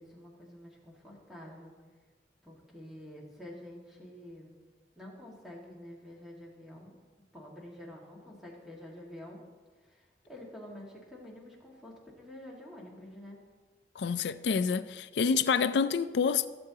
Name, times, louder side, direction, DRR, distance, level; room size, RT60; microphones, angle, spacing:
voice 1, 0.0-1.7 2.4-4.5 5.0-6.9 7.3-9.4 9.8-13.4, left 1 dB, ahead, 1.8 m, -48 dB
voice 2, 14.0-16.5, left 6 dB, 75° left, 0.4 m, -28 dB
16.5 x 7.8 x 2.9 m
head